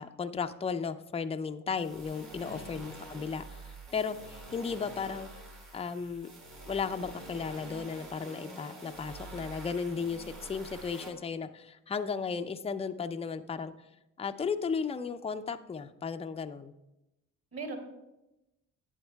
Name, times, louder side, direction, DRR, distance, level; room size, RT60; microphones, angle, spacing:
voice 1, 0.0-5.3 5.7-6.3 6.7-13.7 14.2-16.7, left 5 dB, 15° left, 9 dB, 0.5 m, -35 dB
sound 1, 1.7-11.1, right 2 dB, 75° right, 3.5 m, -47 dB
voice 2, 2.4-2.9 17.5-17.8, right 3 dB, 40° right, 2 dB, 2.7 m, -41 dB
12.0 x 8.5 x 2.3 m, 0.94 s
hypercardioid pair, 50°, 39 cm